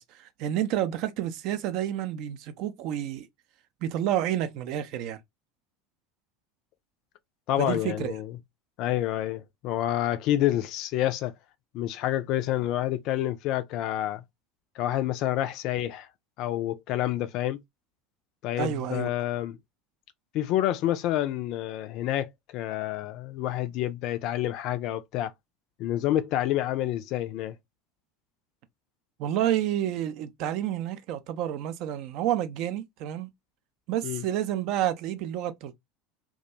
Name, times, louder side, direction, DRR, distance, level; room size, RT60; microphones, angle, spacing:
voice 1, 0.0-3.3 3.8-5.2 7.6-8.1 18.6-19.1 29.2-33.3 33.9-35.7, right 11 dB, 50° right, 0.4 m, -29 dB
voice 2, 7.5-8.3 8.8-11.3 11.7-14.2 14.8-16.1 16.4-17.6 18.4-19.6 20.3-25.3 25.8-27.6 34.0-34.2, left 13 dB, 50° left, 0.3 m, -28 dB
2.3 x 2.2 x 2.8 m
figure-of-eight pair, 75°, 0 cm